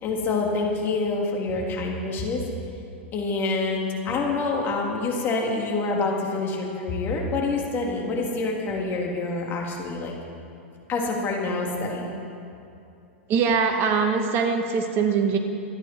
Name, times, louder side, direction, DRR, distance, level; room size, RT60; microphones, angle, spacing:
voice 1, 0.0-2.4 3.1-10.2 10.9-12.1, left 3 dB, 30° left, -1 dB, 3.2 m, -26 dB
voice 2, 13.3-15.4, right 5 dB, 40° right, 4 dB, 1.8 m, -22 dB
26.0 x 9.7 x 4.6 m, 2.6 s
hypercardioid pair, 115°, 7 cm